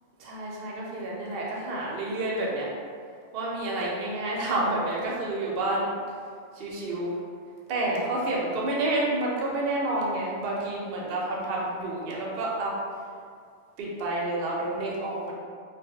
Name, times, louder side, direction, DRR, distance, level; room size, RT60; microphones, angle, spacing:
voice 1, 0.2-2.7 3.3-6.0 6.5-7.2 7.7-12.8 13.8-15.3, right 2 dB, 60° right, -4 dB, 0.6 m, -29 dB
2.1 x 2.1 x 3.6 m, 2.1 s
omnidirectional pair, 1.3 m